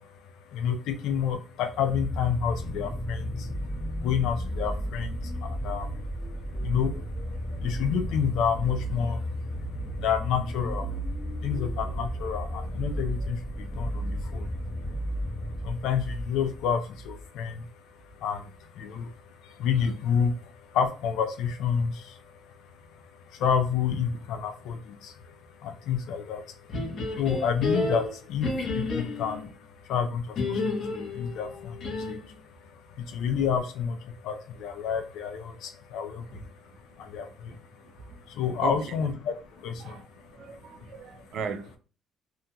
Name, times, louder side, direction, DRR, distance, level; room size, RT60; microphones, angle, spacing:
voice 1, 0.5-3.3 4.0-5.1 5.4-5.9 6.6-6.9 7.6-9.2 10.0-10.8 11.4-13.4 13.8-14.5 15.6-17.5 18.2-18.4 18.8-19.1 19.6-20.3 20.7-21.9 23.4-24.8 25.6-26.4 27.2-29.4 29.9-30.2 30.5-30.6 30.9-31.7 32.1-32.2 33.1-34.0 34.2-36.2 37.1-37.3 38.4-39.3 39.6-39.9, left 7 dB, 80° left, 0.4 m, -28 dB
sound 1, 1.7-17.3 18.1-18.2, equal, ahead, 0.8 m, -33 dB
sound 2, 26.7-29.5 30.4-32.3, left 3 dB, 50° left, 0.7 m, -31 dB
voice 2, 40.4-41.8, right 5 dB, 60° right, 0.4 m, -36 dB
2.9 x 2.7 x 2.2 m
cardioid pair, 150°, 0 cm